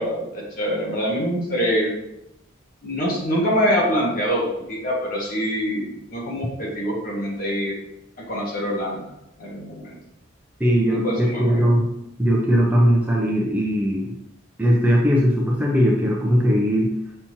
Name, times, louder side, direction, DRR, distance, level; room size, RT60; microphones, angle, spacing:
voice 1, 0.0-1.9 2.8-7.7 8.2-10.0 10.8-11.7, equal, 45° left, -3 dB, 1.1 m, -25 dB
voice 2, 10.6-11.9 12.2-14.1 14.6-16.9, equal, 10° right, -2 dB, 0.4 m, -19 dB
5.6 x 3.0 x 2.8 m, 0.85 s
head